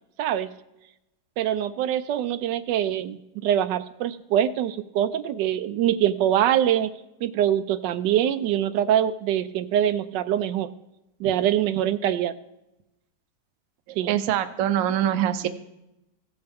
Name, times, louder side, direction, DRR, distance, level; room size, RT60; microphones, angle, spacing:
voice 1, 0.2-0.5 1.4-6.9 7.2-10.7 11.2-12.3 14.0-14.1, right 11 dB, 85° right, 12 dB, 1.2 m, -24 dB
voice 2, 14.0-15.5, right 11 dB, 65° right, 10 dB, 0.9 m, -24 dB
16.0 x 7.8 x 3.5 m, 0.89 s
omnidirectional pair, 1.9 m